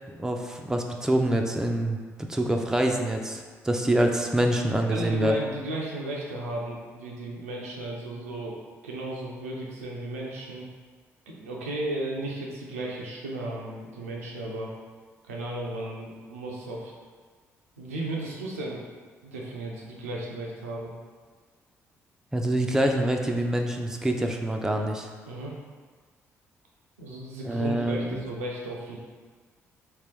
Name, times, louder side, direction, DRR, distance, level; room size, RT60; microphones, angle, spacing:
voice 1, 0.2-5.4 22.3-25.1 27.4-28.2, right 1 dB, 5° right, 2 dB, 0.4 m, -26 dB
voice 2, 4.8-8.6 8.8-10.7 11.3-14.7 15.3-16.9 17.8-18.8 19.2-20.9 25.3-25.6 27.0-29.0, right 1 dB, 85° right, -3 dB, 0.4 m, -35 dB
3.0 x 2.9 x 3.4 m, 1.5 s
figure-of-eight pair, 45°, 7 cm